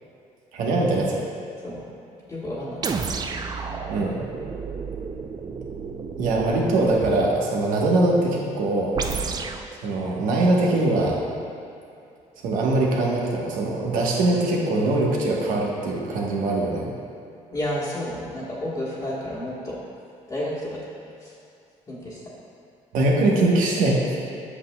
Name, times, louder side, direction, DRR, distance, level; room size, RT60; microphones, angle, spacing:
voice 1, 0.5-1.2 3.9-4.2 6.2-9.0 9.8-11.2 12.4-16.9 22.9-24.2, right 2 dB, 85° right, -2 dB, 1.1 m, -22 dB
voice 2, 2.3-2.8 17.5-19.8 20.3-20.8 21.2-21.3 21.9-22.2, left 1 dB, 25° left, -9 dB, 1.3 m, -30 dB
sound 1, 2.8-7.1 8.9-9.7, right 5 dB, 30° right, 0.4 m, -31 dB
8.0 x 6.0 x 2.2 m, 2.6 s
cardioid pair, 100°, 13 cm